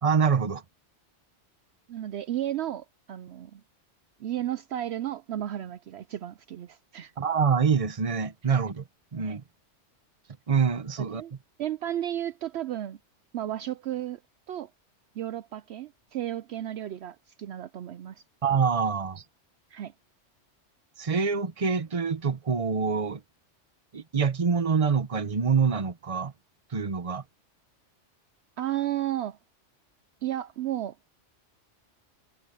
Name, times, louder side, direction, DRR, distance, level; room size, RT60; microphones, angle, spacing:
voice 1, 0.0-0.6 7.2-8.8 9.1-9.4 10.5-11.2 18.4-19.2 21.0-23.2 23.9-26.3 26.7-27.2, right 5 dB, 30° right, 0.9 m, -25 dB
voice 2, 1.9-3.6 4.2-7.1 9.2-9.4 11.0-11.3 11.6-13.0 13.3-14.2 14.5-14.7 15.2-18.2 19.7-19.9 28.6-29.4 30.2-31.0, right 12 dB, 70° right, 0.8 m, -33 dB
omnidirectional pair, 1.2 m